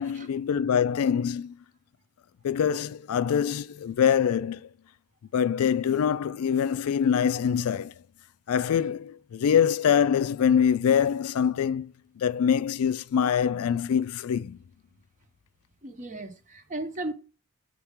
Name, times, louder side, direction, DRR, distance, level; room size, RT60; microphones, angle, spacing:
voice 1, 0.0-1.5 2.4-4.7 5.3-7.9 8.5-11.9 12.2-14.6, left 8 dB, 75° left, 0.3 m, -24 dB
voice 2, 15.8-17.1, right 2 dB, 35° right, 0.9 m, -35 dB
7.3 x 4.4 x 3.6 m
head